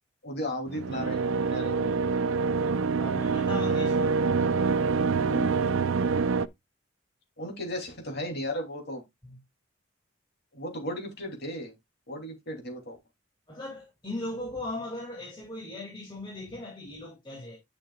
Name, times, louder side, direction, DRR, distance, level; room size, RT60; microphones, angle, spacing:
voice 1, 0.2-2.0 5.2-5.7 7.4-9.0 10.5-11.7 12.1-13.0, equal, 50° left, 2.9 m, -35 dB
sound 1, 0.7-6.5, right 4 dB, 70° right, 0.5 m, -26 dB
voice 2, 3.0-4.1 9.2-9.4 13.5-17.6, left 2 dB, 20° left, 2.3 m, -38 dB
10.5 x 6.3 x 2.3 m
head